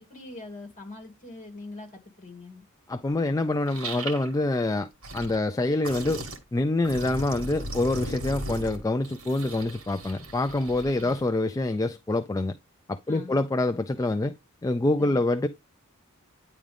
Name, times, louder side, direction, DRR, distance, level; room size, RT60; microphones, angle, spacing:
voice 1, 0.0-2.6 10.9-11.2 13.1-13.4 15.0-15.3, left 2 dB, 35° left, 2.2 m, -43 dB
voice 2, 2.9-6.2 6.5-12.6 12.9-14.3 14.6-15.5, left 2 dB, 15° left, 0.3 m, -26 dB
sound 1, 3.1-3.2 3.7-4.4 4.8-5.4 5.8-6.4 6.8-11.2, right 1 dB, 75° right, 2.0 m, -37 dB
9.8 x 3.7 x 3.4 m
head